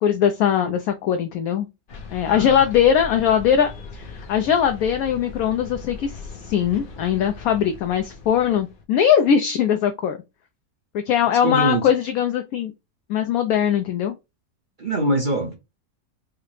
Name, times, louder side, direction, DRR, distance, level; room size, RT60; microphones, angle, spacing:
voice 1, 0.0-1.7 2.1-10.2 11.1-12.7 13.1-14.1, left 8 dB, 70° left, 1.0 m, -20 dB
sound 1, 1.9-8.8, left 4 dB, 50° left, 0.6 m, -39 dB
voice 2, 2.3-2.7 11.4-11.9 14.8-15.6, right 1 dB, 40° right, 0.8 m, -23 dB
4.8 x 2.1 x 3.1 m
omnidirectional pair, 1.7 m